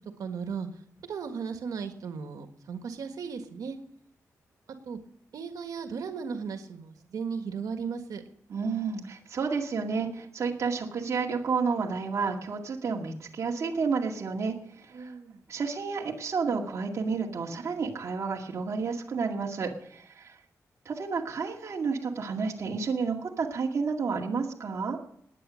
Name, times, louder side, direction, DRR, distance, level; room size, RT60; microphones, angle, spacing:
voice 1, 0.2-0.7 1.1-3.8 4.8-5.0 5.3-8.2 14.9-15.4, right 6 dB, 90° right, 7 dB, 1.5 m, -36 dB
voice 2, 8.5-15.1 15.5-20.4 20.9-25.0, right 5 dB, 55° right, -1 dB, 2.1 m, -31 dB
19.0 x 9.5 x 6.3 m, 0.70 s
wide cardioid pair, 150°, 6 cm